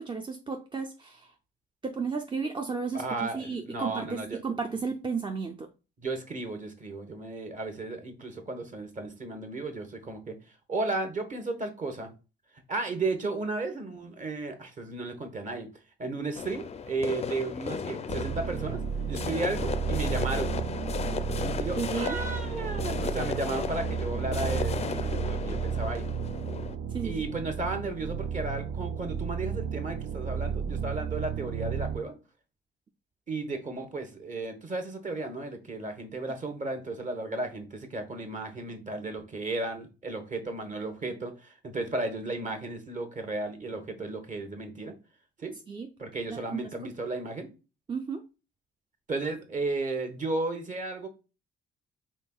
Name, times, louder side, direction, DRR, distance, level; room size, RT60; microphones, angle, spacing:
voice 1, 0.0-1.3 1.8-5.7 21.8-22.2 26.9-27.2 45.7-45.9 46.3-46.9 47.9-48.2, right 5 dB, 25° right, 0.5 m, -33 dB
voice 2, 2.9-4.4 6.0-10.4 10.7-12.1 12.7-15.7 16.0-18.8 19.1-20.5 21.6-26.1 27.0-32.1 33.3-44.9 45.4-45.6 46.0-47.5 49.1-51.1, right 2 dB, 40° right, 1.1 m, -34 dB
sound 1, 16.3-26.8, left 6 dB, 35° left, 0.4 m, -35 dB
sound 2, 18.1-32.0, right 7 dB, 80° right, 0.5 m, -33 dB
4.4 x 3.5 x 2.3 m
cardioid pair, 90°, 20 cm